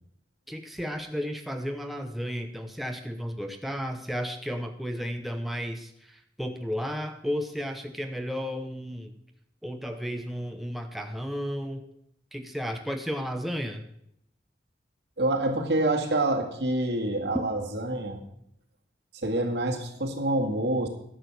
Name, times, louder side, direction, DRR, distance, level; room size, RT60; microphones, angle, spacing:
voice 1, 0.5-9.1 9.6-11.8 12.3-13.8, equal, ahead, 4 dB, 0.8 m, -33 dB
voice 2, 15.2-18.2 19.2-20.9, right 1 dB, 75° right, 2 dB, 2.1 m, -27 dB
12.5 x 6.3 x 8.1 m, 0.73 s
head